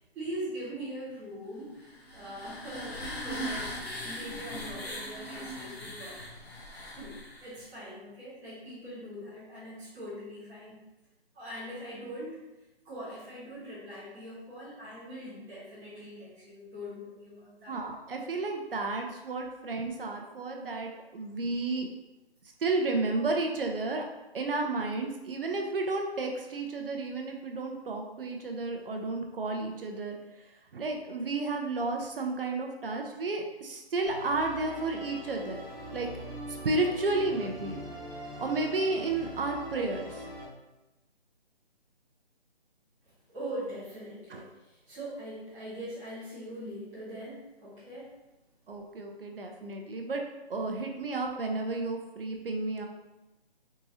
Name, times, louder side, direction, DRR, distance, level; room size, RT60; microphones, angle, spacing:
voice 1, 0.0-3.7 4.0-6.2 6.9-10.8 11.3-12.4 12.8-17.8 43.3-48.1, equal, 5° right, -14 dB, 0.6 m, -42 dB
sound 1, 1.8-7.6, equal, 75° left, 1.0 m, -39 dB
voice 2, 17.7-21.9 22.6-24.1 24.3-35.6 35.9-36.1 36.5-37.8 38.4-40.2 44.3-44.4 48.7-50.2 50.5-52.9, right 3 dB, 60° right, 2 dB, 0.5 m, -32 dB
Musical instrument, 34.1-40.5, equal, 25° right, 0.9 m, -42 dB
3.6 x 2.8 x 2.7 m, 1.0 s
figure-of-eight pair, 150°, 32 cm